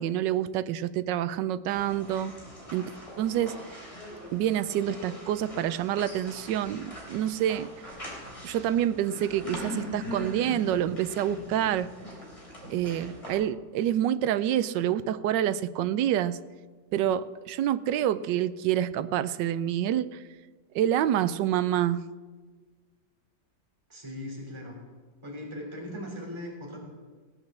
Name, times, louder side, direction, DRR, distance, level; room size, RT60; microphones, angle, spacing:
voice 1, 0.0-2.3 2.7-2.9 3.2-3.6 4.3-7.7 8.4-11.9 12.7-16.4 16.9-20.2 20.7-22.0, right 11 dB, 80° right, 15 dB, 1.3 m, -27 dB
sound 1, 1.7-13.3, equal, 15° left, 3.6 m, -42 dB
voice 2, 23.9-24.8 25.2-26.8, left 1 dB, 15° right, -1 dB, 3.3 m, -39 dB
17.5 x 8.3 x 7.4 m, 1.4 s
omnidirectional pair, 1.9 m